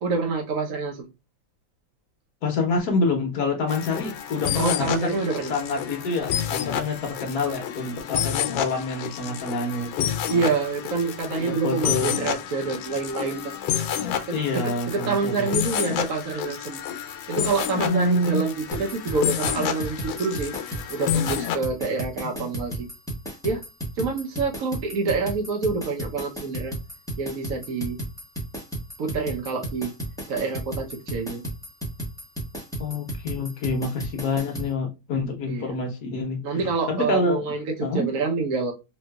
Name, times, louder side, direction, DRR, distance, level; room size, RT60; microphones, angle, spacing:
voice 1, 0.0-1.1 4.6-5.5 10.3-13.5 14.3-16.8 17.3-20.5 20.9-22.9 23.4-23.6 24.0-26.7 27.2-28.0 29.0-29.9 30.3-31.4 35.5-35.7 36.4-38.7, right 4 dB, 60° right, 0.9 m, -27 dB
voice 2, 2.4-5.2 5.5-10.1 11.4-12.1 14.3-15.5 17.8-18.4 22.3-22.5 32.8-37.4 37.8-38.1, left 2 dB, 60° left, 1.2 m, -27 dB
sound 1, 3.7-21.6, left 9 dB, 80° left, 1.4 m, -29 dB
sound 2, 18.7-34.7, right 1 dB, 5° left, 0.6 m, -34 dB
3.2 x 2.9 x 2.2 m
omnidirectional pair, 2.1 m